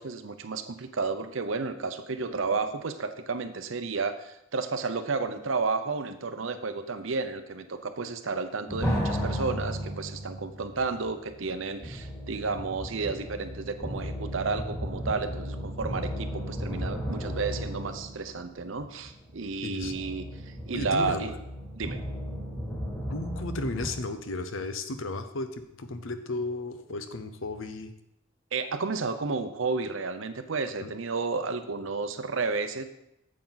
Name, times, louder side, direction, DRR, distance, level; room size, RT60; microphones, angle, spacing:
voice 1, 0.0-21.3 21.7-22.0 28.5-32.8, right 4 dB, 75° right, 9 dB, 0.7 m, -32 dB
sound 1, 8.7-23.9, equal, 10° left, 2.4 m, -35 dB
voice 2, 19.6-19.9 20.7-21.4 23.1-27.9 30.8-30.9, left 2 dB, 80° left, 9 dB, 0.8 m, -34 dB
8.6 x 7.5 x 4.0 m, 0.83 s
head